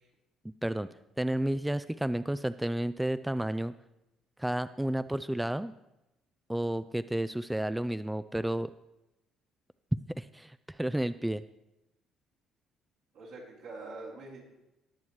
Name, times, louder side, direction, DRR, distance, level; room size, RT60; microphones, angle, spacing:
voice 1, 1.2-3.7 4.4-5.7 6.5-8.7 10.2-11.4, right 1 dB, 5° right, 13 dB, 0.3 m, -31 dB
voice 2, 13.1-14.4, right 3 dB, 75° right, -6 dB, 4.1 m, -44 dB
19.5 x 7.1 x 3.2 m, 0.93 s
supercardioid pair, 65°, 0 cm